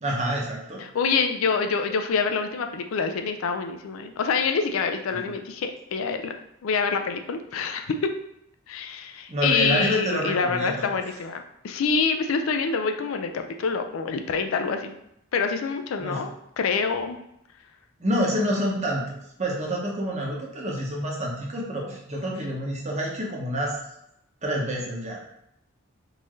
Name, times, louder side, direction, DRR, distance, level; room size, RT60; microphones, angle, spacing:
voice 1, 0.0-0.8 5.1-5.4 9.3-10.9 16.0-16.3 18.0-19.1 19.4-23.8 24.4-25.2, equal, 35° right, -2 dB, 0.8 m, -28 dB
voice 2, 0.8-6.3 6.6-7.9 8.7-14.9 15.3-17.2, left 5 dB, 80° left, 6 dB, 0.4 m, -26 dB
3.8 x 2.6 x 3.1 m, 0.80 s
head